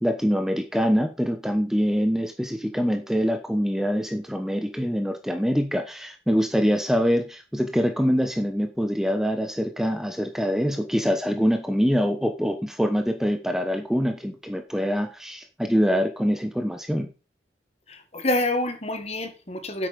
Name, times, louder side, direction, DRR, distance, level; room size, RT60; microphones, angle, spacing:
voice 1, 0.0-17.1, equal, 5° right, 1.0 m, -24 dB
voice 2, 17.9-19.9, left 1 dB, 35° left, 1.7 m, -27 dB
9.9 x 8.4 x 5.2 m
head